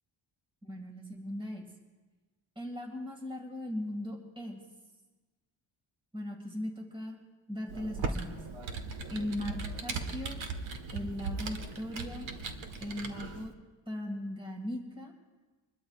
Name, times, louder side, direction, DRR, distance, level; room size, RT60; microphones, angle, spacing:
voice 1, 0.6-1.7 2.6-4.6 6.1-7.2 7.5-8.4 9.1-10.4 10.9-12.3 12.8-13.5 13.9-15.1, left 1 dB, 10° right, 1 dB, 2.0 m, -38 dB
Computer keyboard, 7.7-13.5, right 4 dB, 85° right, 1.5 m, -38 dB
25.5 x 21.0 x 2.4 m, 1.2 s
wide cardioid pair, 170°, 45 cm